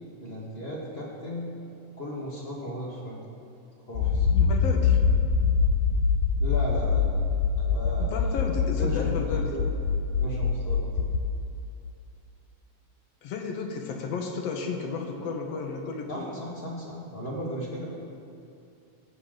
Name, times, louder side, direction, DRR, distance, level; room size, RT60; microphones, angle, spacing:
voice 1, 0.2-1.5 2.0-3.2 3.9-4.3 6.4-7.1 7.6-8.4 8.8-9.6 10.2-10.8 16.1-17.9, equal, 50° left, -5 dB, 0.7 m, -36 dB
Accelerating revving vroom, 3.9-11.2, left 5 dB, 85° left, 2.0 m, -24 dB
voice 2, 4.4-5.0 8.0-9.6 13.2-16.4, left 4 dB, 70° left, 3 dB, 1.7 m, -33 dB
15.0 x 7.6 x 3.9 m, 2.6 s
omnidirectional pair, 3.3 m